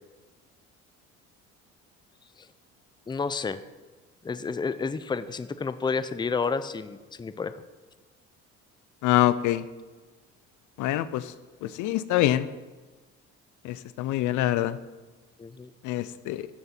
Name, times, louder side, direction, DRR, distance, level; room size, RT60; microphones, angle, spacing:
voice 1, 3.1-3.6 4.2-7.6 15.4-15.7, left 5 dB, 15° left, 13 dB, 0.5 m, -30 dB
voice 2, 9.0-9.6 10.8-11.2 11.8-12.5 13.6-14.8 15.8-16.5, left 14 dB, 80° left, 15 dB, 0.6 m, -25 dB
14.0 x 6.8 x 4.4 m, 1.3 s
cardioid pair, 95°, 30 cm